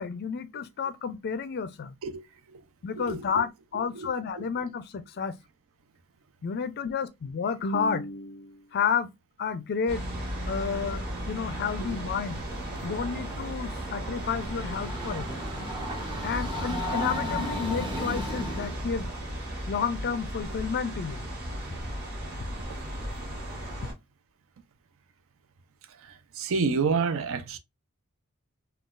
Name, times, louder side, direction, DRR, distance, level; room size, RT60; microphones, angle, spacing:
voice 1, 0.0-2.0 2.8-5.4 6.4-9.1 9.4-10.0 10.5-12.4 12.8-15.3 16.2-19.1 19.7-21.2, left 6 dB, 50° left, 0.4 m, -31 dB
voice 2, 2.0-2.6 3.0-3.4 3.7-4.5 10.7-10.8 11.9-12.0 12.7-13.1 16.4-16.5 25.9-27.6, right 5 dB, 65° right, 0.5 m, -31 dB
sound 1, 9.9-23.9, right 1 dB, 50° right, 1.9 m, -36 dB
Train, 14.0-18.9, left 1 dB, 20° right, 0.8 m, -34 dB
3.8 x 2.3 x 2.4 m
head